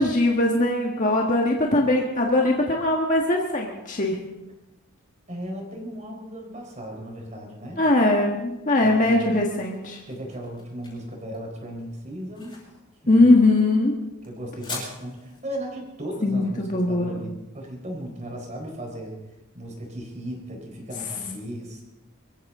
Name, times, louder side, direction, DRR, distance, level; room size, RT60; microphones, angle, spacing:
voice 1, 0.0-4.2 7.8-10.0 13.1-13.9 16.2-17.1, left 2 dB, 35° left, -1 dB, 1.5 m, -20 dB
voice 2, 5.3-7.8 8.8-9.3 10.1-12.5 13.0-13.3 14.2-19.2 19.5-21.8, equal, 35° right, 1 dB, 4.2 m, -36 dB
sound 1, 9.6-18.1, left 3 dB, 20° left, 6.3 m, -44 dB
24.0 x 14.5 x 3.7 m, 1.0 s
head